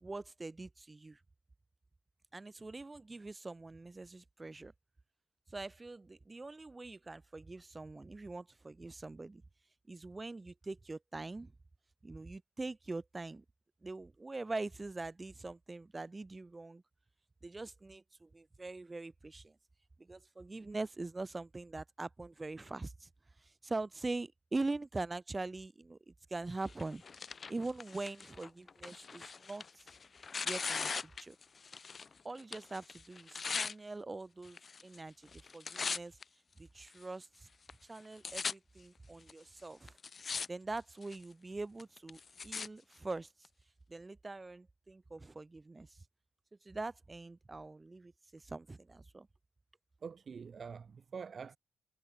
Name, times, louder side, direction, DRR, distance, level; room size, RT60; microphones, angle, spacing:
voice 1, 0.0-1.2 2.3-4.7 5.5-9.4 9.9-11.5 12.0-13.4 13.8-16.8 17.4-19.6 20.0-23.1 23.4-27.0 27.5-29.8 30.4-31.4 32.2-36.2 36.6-37.5 37.8-39.9 40.5-43.3 43.9-46.0 46.6-49.3, right 3 dB, 25° right, 1.7 m, -43 dB
Tearing, 26.7-32.1 32.4-33.7 34.5-35.0 35.3-36.2 36.9-37.0 37.7-37.8 38.0-38.5 39.3-39.4 39.9-40.5 40.8-41.2 41.8-42.7 43.5-43.6, left 5 dB, 45° left, 2.2 m, -40 dB
voice 2, 50.0-51.6, right 6 dB, 55° right, 1.7 m, -45 dB
cardioid pair, 65°, 0 cm